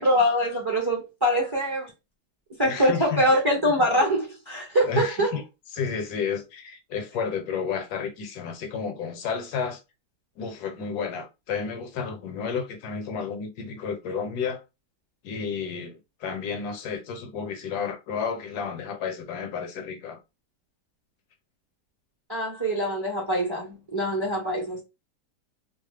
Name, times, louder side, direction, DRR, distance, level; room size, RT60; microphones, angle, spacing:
voice 1, 0.0-1.9 2.6-5.4 22.3-24.8, equal, 25° right, 0.6 m, -24 dB
voice 2, 2.6-3.2 4.8-5.4 5.7-9.8 10.4-14.6 15.2-20.2, left 6 dB, 75° left, 1.2 m, -31 dB
2.8 x 2.1 x 3.1 m
omnidirectional pair, 1.8 m